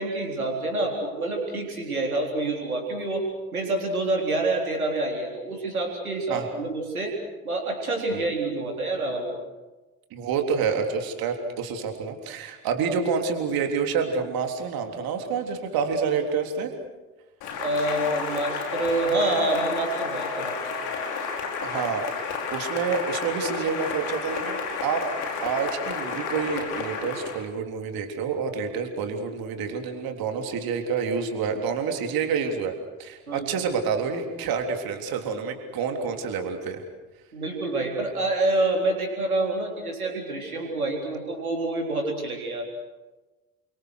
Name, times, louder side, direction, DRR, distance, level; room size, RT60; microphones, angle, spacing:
voice 1, 0.0-3.3 3.5-7.2 7.4-9.4 17.6-20.6 33.3-33.5 37.3-42.7, right 2 dB, 85° right, 2 dB, 4.0 m, -27 dB
voice 2, 10.1-16.7 21.6-22.0 22.5-25.1 25.4-36.8, right 6 dB, 55° right, 5 dB, 3.6 m, -28 dB
Cheering / Applause, 17.4-27.5, left 5 dB, 60° left, 4.8 m, -31 dB
29.5 x 25.0 x 6.5 m, 1.1 s
figure-of-eight pair, 50°, 42 cm